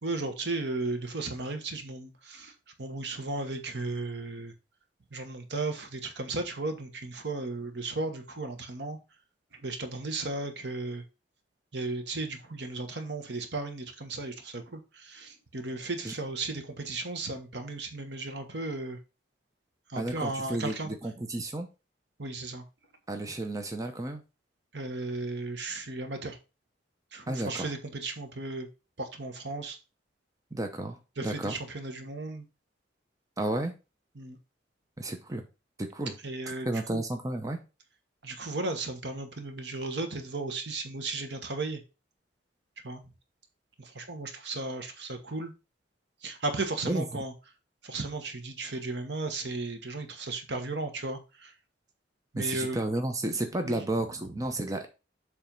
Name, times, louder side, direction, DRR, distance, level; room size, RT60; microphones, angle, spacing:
voice 1, 0.0-2.5 2.8-4.5 5.1-9.0 9.6-11.0 11.7-14.8 15.1-19.0 19.9-20.9 22.2-22.6 24.7-26.4 27.1-28.7 29.0-29.8 31.2-32.4 34.2-34.4 36.2-36.7 36.9-37.0 38.2-41.8 42.8-43.0 43.9-45.5 46.2-47.3 47.8-51.2 52.3-52.8 53.6-53.8, right 3 dB, 65° right, 1.3 m, -35 dB
voice 2, 20.0-21.7 23.1-24.2 27.3-27.7 30.5-31.6 33.4-33.7 35.0-35.4 35.8-36.2 36.5-37.6 46.8-47.2 52.4-54.9, right 1 dB, 20° right, 0.7 m, -32 dB
7.4 x 3.5 x 5.2 m
head